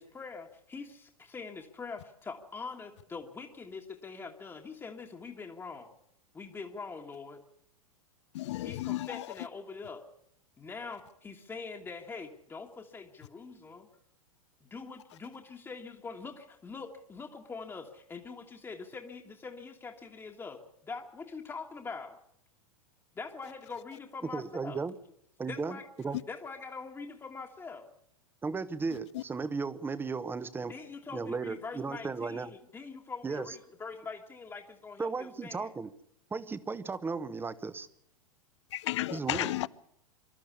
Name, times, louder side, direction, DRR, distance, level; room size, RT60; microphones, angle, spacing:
voice 1, 0.0-5.9 6.3-7.4 8.6-10.0 10.6-13.9 14.6-22.2 23.1-24.8 25.5-25.9 26.3-27.9 30.6-35.7, left 4 dB, 15° left, 1.6 m, -43 dB
voice 2, 8.3-9.3 29.1-29.2 38.7-39.7, left 15 dB, 55° left, 0.7 m, -33 dB
voice 3, 24.3-24.9 25.4-26.2 28.4-30.7 31.1-32.5 33.2-33.5 35.0-35.9 36.3-37.9 39.1-39.5, right 4 dB, 10° right, 1.0 m, -35 dB
24.5 x 13.0 x 8.4 m
figure-of-eight pair, 95°, 18 cm